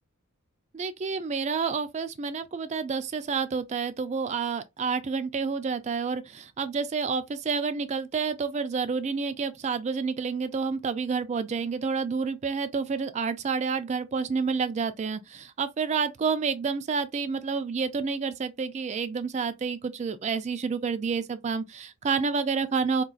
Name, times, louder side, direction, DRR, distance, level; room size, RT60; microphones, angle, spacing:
voice 1, 0.7-23.0, right 5 dB, 30° right, 0.3 m, -29 dB
3.7 x 2.3 x 2.4 m
head